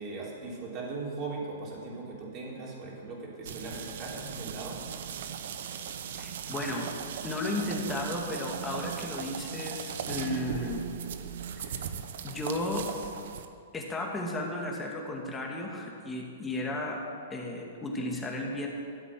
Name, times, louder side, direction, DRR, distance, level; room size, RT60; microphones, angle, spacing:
voice 1, 0.0-4.8, right 3 dB, 35° right, -4 dB, 3.8 m, -39 dB
sound 1, 3.5-13.5, right 8 dB, 65° right, 0.9 m, -38 dB
voice 2, 6.1-6.9 7.2-10.8 11.5-11.9 12.2-12.9 13.7-17.0 17.3-18.7, left 2 dB, 15° left, -1 dB, 2.2 m, -34 dB
13.5 x 8.2 x 7.7 m, 2.5 s
hypercardioid pair, 135°, 0 cm